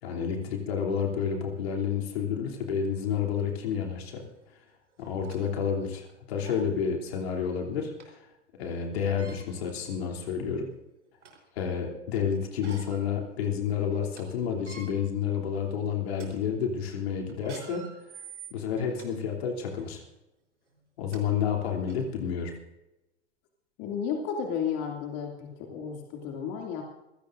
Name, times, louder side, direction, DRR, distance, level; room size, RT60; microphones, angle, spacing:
voice 1, 0.0-4.2 5.0-8.1 8.6-10.7 11.6-17.9 18.5-20.0 21.0-22.5, left 7 dB, 65° left, 1 dB, 3.1 m, -30 dB
sound 1, 4.2-4.3 5.0-5.4 6.0-6.1 6.4-6.7 8.0-8.1 9.0-9.4 10.2-10.3 10.8-11.5 12.4-13.1 13.5-13.6 13.9-14.2 14.5-14.9 15.5-15.7 16.1-16.3 17.3-19.1 19.7-19.9 20.7-20.8 21.1-21.2 21.9-22.0, right 6 dB, 85° right, 4.0 m, -48 dB
voice 2, 23.8-26.8, left 7 dB, 45° left, 1 dB, 2.6 m, -33 dB
26.0 x 16.5 x 2.6 m, 0.95 s
figure-of-eight pair, 90°, 34 cm